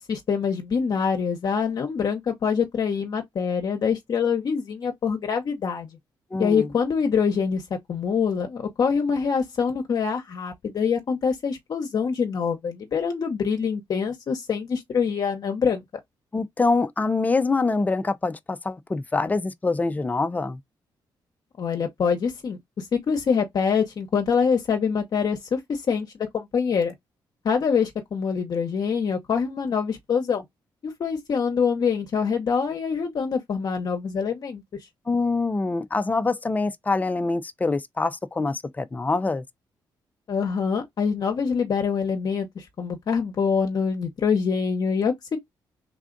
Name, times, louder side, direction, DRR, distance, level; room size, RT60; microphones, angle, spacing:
voice 1, 0.1-5.9 6.4-15.8 21.6-26.9 27.4-30.4 30.8-34.6 40.3-45.4, left 6 dB, 50° left, 0.8 m, -25 dB
voice 2, 6.3-6.7 16.3-20.6 35.1-39.4, left 3 dB, 20° left, 0.5 m, -25 dB
3.5 x 2.4 x 3.8 m
cardioid pair, 105°, 8 cm